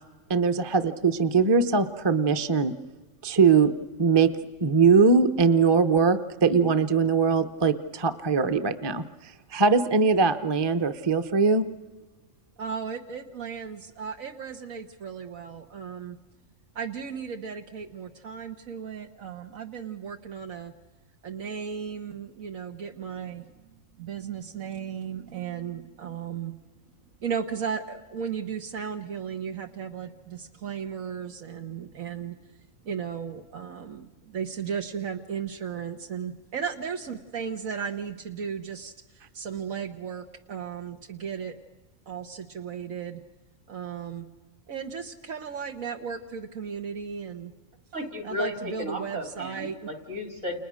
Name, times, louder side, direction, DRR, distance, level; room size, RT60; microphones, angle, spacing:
voice 1, 0.3-2.7 3.2-3.7 4.0-4.3 4.6-11.6, right 5 dB, 20° right, 9 dB, 0.8 m, -21 dB
voice 2, 12.6-16.2 16.7-20.7 21.2-26.6 27.2-32.6 32.8-41.6 42.1-43.2 43.7-44.3 44.7-47.5 48.2-49.9, right 7 dB, 80° right, 4 dB, 1.6 m, -35 dB
voice 3, 47.9-50.6, left 1 dB, 60° right, 5 dB, 3.8 m, -34 dB
30.0 x 29.5 x 6.4 m, 1.2 s
omnidirectional pair, 1.4 m